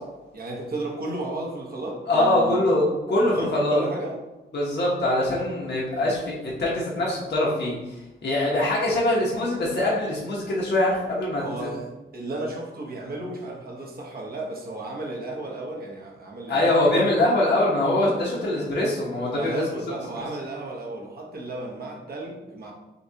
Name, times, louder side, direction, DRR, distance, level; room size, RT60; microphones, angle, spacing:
voice 1, 0.3-2.8 3.1-4.2 11.4-16.7 19.3-22.7, right 2 dB, 45° right, -1 dB, 0.9 m, -34 dB
voice 2, 2.1-3.8 4.5-6.3 6.6-7.8 8.2-11.7 16.5-19.6, left 1 dB, 55° left, -5 dB, 1.0 m, -23 dB
6.4 x 2.3 x 2.8 m, 1.1 s
wide cardioid pair, 145°, 21 cm